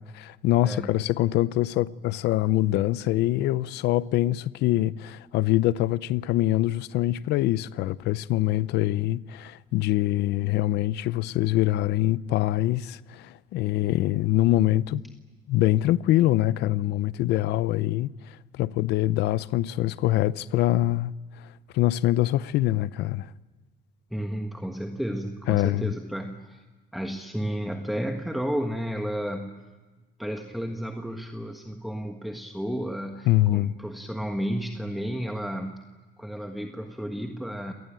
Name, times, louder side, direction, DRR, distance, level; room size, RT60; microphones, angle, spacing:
voice 1, 0.0-15.0 15.5-18.1 18.6-21.1 21.7-23.3 25.5-25.9 33.3-33.8, left 15 dB, 80° left, 0.7 m, -24 dB
voice 2, 0.6-1.0 24.1-26.6 26.9-29.6 30.2-35.8 36.2-37.7, equal, ahead, 1.5 m, -32 dB
27.5 x 19.0 x 9.0 m
cardioid pair, 110°, 17 cm